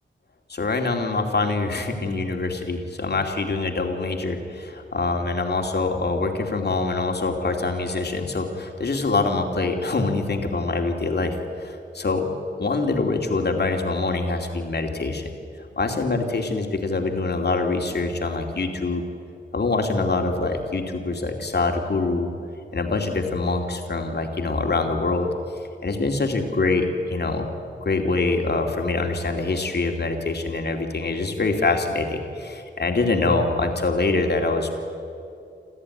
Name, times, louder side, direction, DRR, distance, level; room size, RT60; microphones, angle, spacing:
voice 1, 0.5-11.3 11.6-12.3 12.6-15.3 15.8-19.0 19.5-22.3 22.7-25.3 25.8-27.5 27.8-34.8, left 3 dB, 60° left, 3 dB, 2.6 m, -24 dB
28.0 x 13.5 x 9.8 m, 2.7 s
wide cardioid pair, 85°, 19 cm